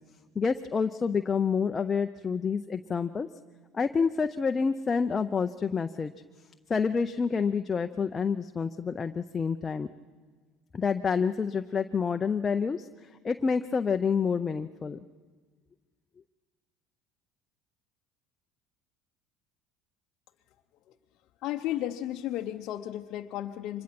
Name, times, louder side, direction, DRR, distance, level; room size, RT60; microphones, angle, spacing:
voice 1, 0.4-3.3 3.7-6.1 6.7-9.9 10.7-15.0, left 5 dB, 25° left, 7 dB, 0.6 m, -28 dB
voice 2, 21.4-23.8, left 13 dB, 65° left, 3 dB, 0.8 m, -33 dB
24.5 x 21.0 x 6.0 m, 1.5 s
supercardioid pair, 100°, 0 cm